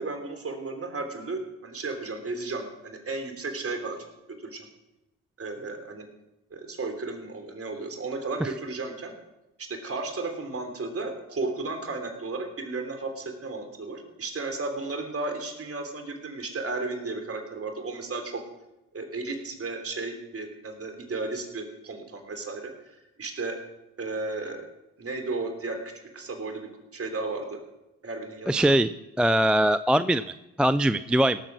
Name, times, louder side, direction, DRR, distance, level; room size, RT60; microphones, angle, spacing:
voice 1, 0.0-4.0 4.4-4.6 5.4-6.0 6.5-9.1 9.6-18.4 18.9-23.6 24.0-24.7 25.0-25.8 26.1-27.6 28.0-28.7, right 3 dB, 40° right, 5 dB, 3.4 m, -34 dB
voice 2, 28.5-28.9 29.2-30.2 30.6-31.4, right 1 dB, 5° right, 13 dB, 0.4 m, -21 dB
18.0 x 7.4 x 6.0 m, 0.94 s
hypercardioid pair, 50°, 36 cm